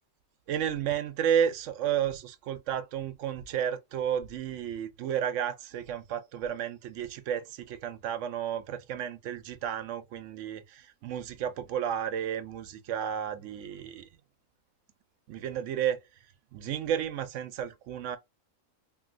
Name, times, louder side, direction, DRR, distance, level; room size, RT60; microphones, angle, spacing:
voice 1, 0.5-14.1 15.3-16.0 16.5-18.2, right 9 dB, 75° right, 0.9 m, -32 dB
3.0 x 2.6 x 2.4 m
omnidirectional pair, 1.4 m